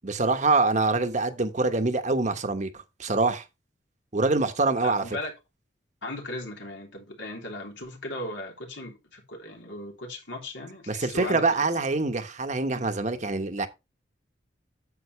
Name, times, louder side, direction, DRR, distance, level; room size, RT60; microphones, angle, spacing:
voice 1, 0.0-2.7 3.0-3.4 4.1-5.0 10.9-13.7, right 3 dB, 40° right, 1.1 m, -25 dB
voice 2, 4.8-5.3 6.0-11.7, left 1 dB, 85° left, 3.3 m, -37 dB
9.6 x 7.7 x 3.2 m
head